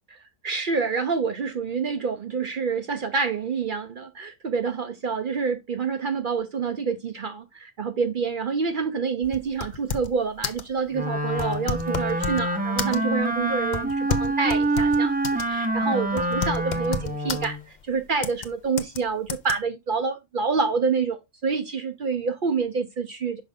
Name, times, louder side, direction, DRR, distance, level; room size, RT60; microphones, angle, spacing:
voice 1, 0.4-15.1 15.5-23.4, right 5 dB, 55° right, 0.7 m, -27 dB
sound 1, 9.2-10.2 10.4-10.7 11.3-12.5 12.8-13.2 13.7-15.5 15.8-15.9 16.2-17.5 18.2-18.5 18.8-19.0 19.3-19.5, left 5 dB, 50° left, 0.7 m, -31 dB
Wind instrument woodwind instrument, 10.9-17.6, right 2 dB, 10° right, 0.6 m, -26 dB
5.9 x 5.2 x 3.5 m
omnidirectional pair, 1.2 m